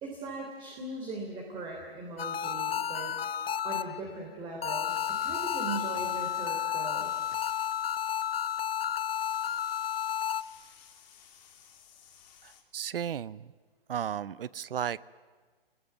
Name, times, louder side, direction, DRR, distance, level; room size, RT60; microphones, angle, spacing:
voice 1, 0.0-3.1 3.6-7.1, right 3 dB, 15° right, 0 dB, 3.5 m, -39 dB
sound 1, 2.2-4.2 4.6-10.4, left 9 dB, 75° left, 1.1 m, -32 dB
sound 2, 4.9-12.6, left 8 dB, 45° left, 4.2 m, -55 dB
voice 2, 12.4-13.5 13.9-15.1, right 9 dB, 70° right, 21 dB, 0.8 m, -34 dB
26.0 x 20.5 x 9.2 m, 1.5 s
hypercardioid pair, 145°, 30 cm